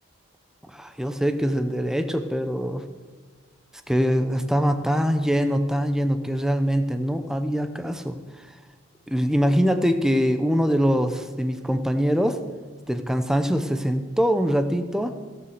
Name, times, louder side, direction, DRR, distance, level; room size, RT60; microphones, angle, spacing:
voice 1, 0.7-2.8 3.9-8.5 9.1-12.4 12.9-15.1, equal, ahead, 8 dB, 0.7 m, -23 dB
16.5 x 6.9 x 6.6 m, 1.4 s
head